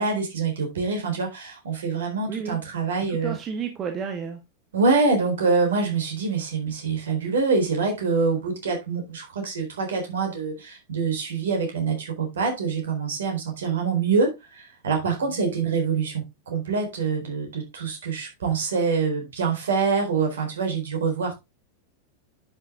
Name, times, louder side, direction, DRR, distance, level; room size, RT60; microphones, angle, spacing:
voice 1, 0.0-3.3 4.7-21.3, right 4 dB, 65° right, 3 dB, 4.1 m, -25 dB
voice 2, 2.2-2.6 3.1-4.4 15.3-15.4, right 6 dB, 30° right, 6 dB, 1.5 m, -32 dB
10.5 x 6.2 x 3.5 m, 0.22 s
figure-of-eight pair, 90°, 0 cm